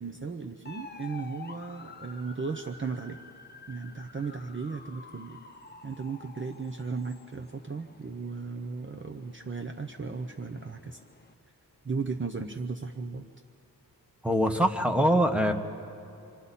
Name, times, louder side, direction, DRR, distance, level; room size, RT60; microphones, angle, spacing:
voice 1, 0.0-3.2 3.7-5.4 5.8-11.0 11.8-13.3, right 4 dB, 30° right, 4 dB, 0.8 m, -36 dB
sound 1, 0.7-11.3, left 4 dB, 25° left, 0.9 m, -50 dB
voice 2, 14.2-15.5, equal, 5° right, 4 dB, 1.2 m, -23 dB
28.5 x 25.5 x 4.2 m, 2.8 s
wide cardioid pair, 100°, 38 cm